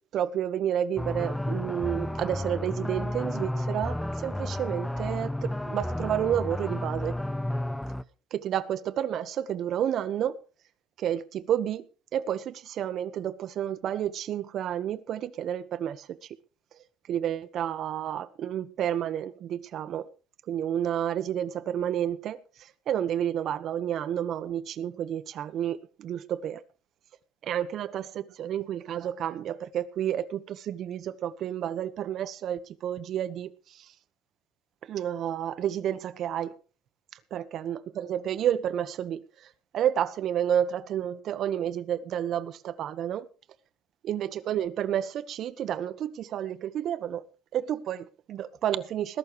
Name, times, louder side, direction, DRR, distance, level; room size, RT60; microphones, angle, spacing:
voice 1, 0.1-7.2 8.3-10.3 11.0-11.9 12.1-16.2 17.1-20.0 20.5-22.4 22.9-26.6 27.4-33.8 34.9-36.5 37.3-39.2 39.7-43.3 44.0-47.2 47.5-49.2, right 10 dB, 55° right, 1.2 m, -30 dB
sound 1, 1.0-8.0, left 1 dB, 5° left, 0.7 m, -32 dB
20.5 x 12.0 x 3.2 m
cardioid pair, 120°, 0 cm